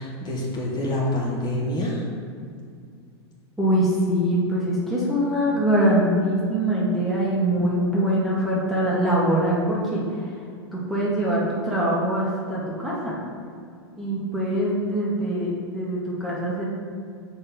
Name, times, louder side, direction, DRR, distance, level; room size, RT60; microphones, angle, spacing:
voice 1, 0.0-2.1, left 1 dB, 30° left, -4 dB, 1.5 m, -26 dB
voice 2, 3.6-10.4 10.7-13.2 14.0-16.7, right 1 dB, ahead, -7 dB, 1.3 m, -23 dB
6.4 x 4.5 x 3.7 m, 2.3 s
hypercardioid pair, 110°, 14 cm